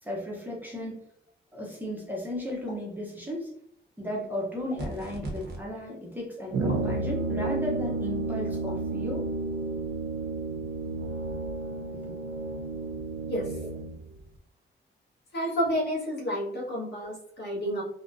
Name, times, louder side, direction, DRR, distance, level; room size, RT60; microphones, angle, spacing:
voice 1, 0.0-1.0 1.5-3.5 4.0-9.2, left 1 dB, 10° right, -3 dB, 0.7 m, -35 dB
sound 1, 2.7-3.0 4.7-5.0 6.7-6.9 8.7-9.0, left 2 dB, 75° left, 0.9 m, -47 dB
sound 2, 4.8-5.6, right 2 dB, 55° right, 0.8 m, -36 dB
Brass instrument, 6.5-14.0, right 3 dB, 85° right, 0.4 m, -31 dB
voice 2, 15.3-17.8, equal, 55° left, -5 dB, 1.4 m, -30 dB
3.6 x 2.1 x 2.5 m, 0.72 s
wide cardioid pair, 145°, 20 cm